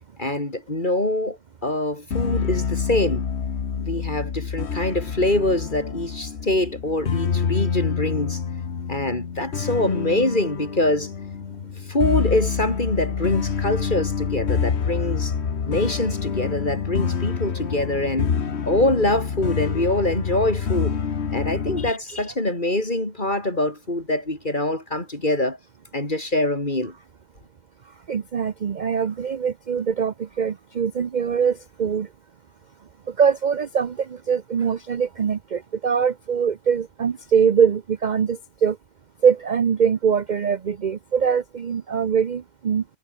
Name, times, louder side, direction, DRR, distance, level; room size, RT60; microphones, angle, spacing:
voice 1, 0.2-3.3 3.8-8.4 8.9-11.1 11.9-15.3 15.6-18.3 18.6-21.0 21.3-25.6 25.9-26.9, left 1 dB, 30° left, 4.9 m, -24 dB
sound 1, 2.1-21.9, left 6 dB, 50° left, 1.5 m, -27 dB
voice 2, 21.8-22.2 28.1-32.1 33.1-38.8 39.2-42.8, right 7 dB, 40° right, 0.7 m, -23 dB
omnidirectional pair, 1.5 m